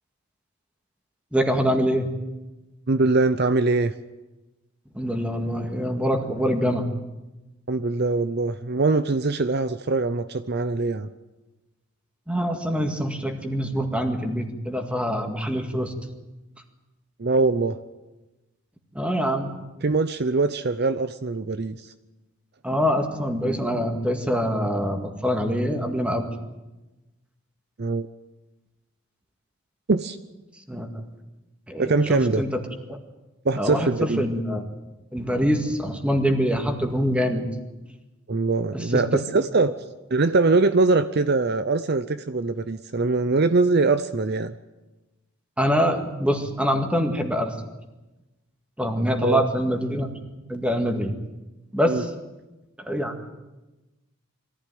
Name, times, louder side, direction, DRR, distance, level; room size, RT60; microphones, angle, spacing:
voice 1, 1.3-2.1 4.9-6.9 12.3-15.9 18.9-19.5 22.6-26.3 30.7-31.0 31.7-32.6 32.9-33.0 33.6-34.6 35.1-37.5 38.7-39.0 45.6-47.6 48.8-50.1 50.5-51.1 51.7-52.1 52.8-53.3, equal, 5° right, 4 dB, 1.9 m, -24 dB
voice 2, 2.9-3.9 7.7-11.1 17.2-17.8 19.8-21.9 27.8-28.1 29.9-30.2 31.8-32.4 33.4-34.2 38.3-39.7 40.1-44.5 49.2-49.4 51.8-52.0, right 3 dB, 50° right, 12 dB, 0.6 m, -22 dB
23.0 x 15.0 x 9.3 m, 1.1 s
head